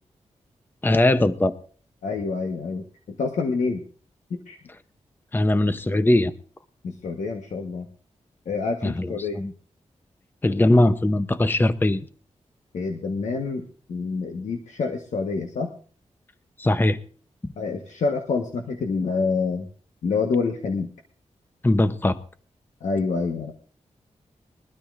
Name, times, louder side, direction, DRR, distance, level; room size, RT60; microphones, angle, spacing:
voice 1, 0.8-1.5 5.3-6.3 8.8-9.1 9.4-9.5 10.4-12.0 16.6-17.0 21.6-22.2, left 1 dB, 15° left, 12 dB, 0.7 m, -20 dB
voice 2, 2.0-3.8 4.3-4.6 6.8-7.9 8.5-9.4 12.7-15.7 17.6-19.7 20.0-20.9 22.8-23.5, left 4 dB, 90° left, 4 dB, 1.2 m, -27 dB
22.0 x 12.5 x 2.5 m, 0.42 s
wide cardioid pair, 95°, 12 cm